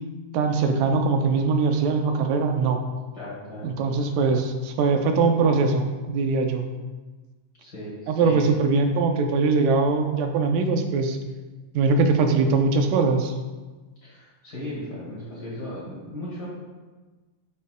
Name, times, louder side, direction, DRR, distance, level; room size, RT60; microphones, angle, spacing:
voice 1, 0.3-2.8 3.6-6.7 8.1-11.2 11.7-13.4, right 4 dB, 90° right, 5 dB, 2.3 m, -22 dB
voice 2, 3.1-3.7 7.6-8.5 14.0-16.5, left 1 dB, 40° left, -7 dB, 1.8 m, -36 dB
10.5 x 5.4 x 2.2 m, 1.3 s
omnidirectional pair, 3.8 m